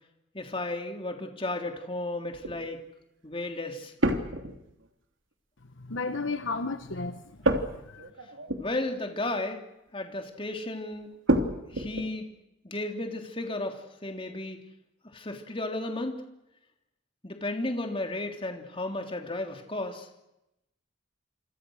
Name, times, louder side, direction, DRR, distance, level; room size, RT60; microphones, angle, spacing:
voice 1, 0.3-2.8 3.2-3.9 8.6-9.6 9.9-11.1 11.7-12.3 12.6-14.6 15.1-16.2 17.2-20.1, left 2 dB, 25° left, 4 dB, 3.4 m, -33 dB
sound 1, 2.3-2.7 4.0-4.9 7.4-9.0 9.2-9.5 11.3-12.1, right 1 dB, 70° right, 3.0 m, -29 dB
voice 2, 5.8-8.1, left 3 dB, 65° left, 9 dB, 1.3 m, -34 dB
28.0 x 26.0 x 6.5 m, 0.89 s
head